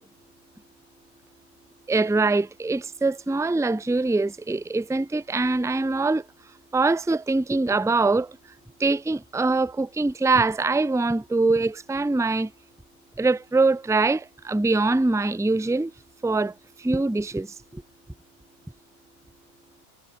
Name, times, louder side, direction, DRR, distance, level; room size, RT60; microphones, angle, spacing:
voice 1, 1.9-6.2 6.7-8.4 8.8-12.5 13.2-15.9 16.2-16.5 16.8-17.8, right 3 dB, ahead, 0.9 m, -23 dB
omnidirectional pair, 1.5 m